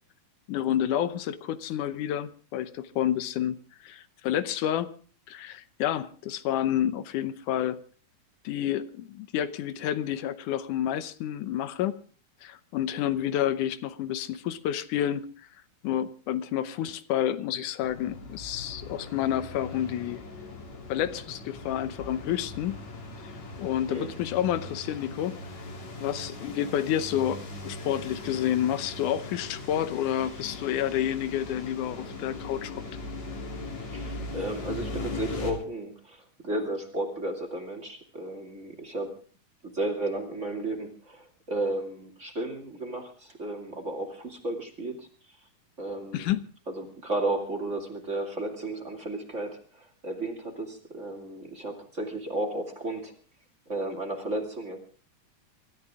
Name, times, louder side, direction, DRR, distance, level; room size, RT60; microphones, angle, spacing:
voice 1, 0.5-4.9 5.3-7.8 8.4-11.9 12.4-15.3 15.8-20.2 20.9-22.8 23.2-23.3 23.6-25.4 26.0-32.8 46.1-46.4, left 11 dB, 80° left, 2.4 m, -29 dB
sound 1, 17.8-35.5, left 2 dB, 60° left, 4.5 m, -39 dB
voice 2, 33.9-39.1 39.6-45.1 45.8-46.3 46.7-53.1 53.7-54.8, right 2 dB, 25° right, 2.4 m, -33 dB
25.5 x 13.0 x 3.6 m
omnidirectional pair, 3.6 m